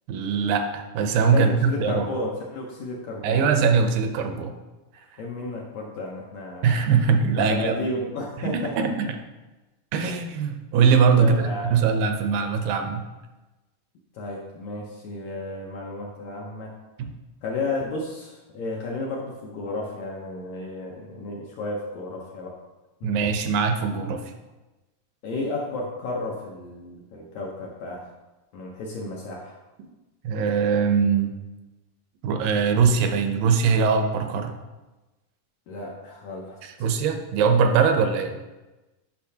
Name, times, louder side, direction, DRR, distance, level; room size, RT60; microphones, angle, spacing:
voice 1, 0.1-2.1 3.2-4.5 6.6-7.9 8.4-9.1 9.9-13.0 17.0-17.1 23.0-24.2 30.2-31.3 32.2-34.6 36.6-38.4, right 6 dB, 80° right, 6 dB, 2.3 m, -22 dB
voice 2, 1.3-3.5 5.2-6.7 7.4-9.1 10.1-10.2 11.1-11.7 14.1-16.7 17.4-22.5 23.0-23.1 25.2-28.1 28.5-29.6 35.7-36.9, left 2 dB, 70° left, -2 dB, 1.8 m, -32 dB
10.5 x 5.5 x 2.8 m, 1.1 s
omnidirectional pair, 4.0 m